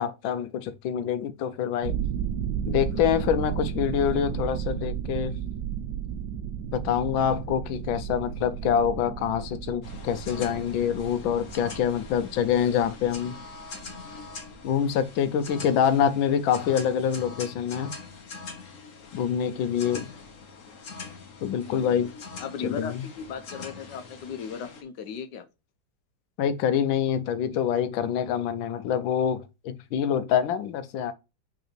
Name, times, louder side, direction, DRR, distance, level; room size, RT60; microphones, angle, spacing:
voice 1, 0.0-1.9 2.7-5.4 6.7-13.4 14.6-17.9 19.1-20.1 21.4-22.1 22.6-23.0 26.4-31.1, left 8 dB, 85° left, 1.5 m, -26 dB
sound 1, 1.8-14.9, right 9 dB, 70° right, 1.2 m, -34 dB
sound 2, 9.8-24.8, left 4 dB, 45° left, 1.3 m, -43 dB
voice 2, 21.6-22.1 22.4-25.4, left 7 dB, 70° left, 1.4 m, -36 dB
5.4 x 3.9 x 4.4 m
omnidirectional pair, 2.1 m